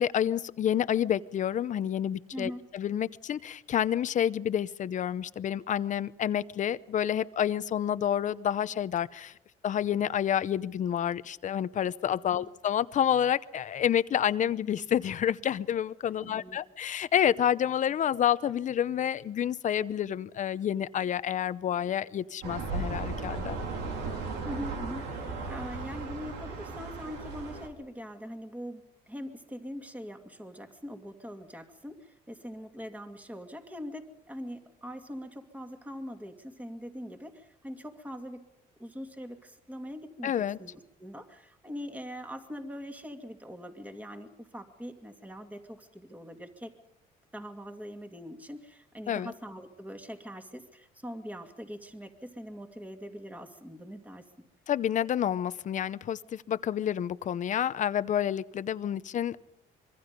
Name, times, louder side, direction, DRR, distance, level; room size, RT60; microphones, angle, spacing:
voice 1, 0.0-9.3 9.6-23.6 40.2-40.6 49.1-49.3 54.7-59.4, left 9 dB, 45° left, 15 dB, 0.8 m, -29 dB
voice 2, 2.3-2.7 12.2-12.5 16.0-16.6 24.4-38.4 38.8-46.8 47.3-54.2, equal, 10° right, 6 dB, 2.4 m, -42 dB
sound 1, 22.4-27.7, right 4 dB, 90° right, 3.7 m, -36 dB
25.5 x 23.5 x 5.3 m, 0.83 s
cardioid pair, 110°, 17 cm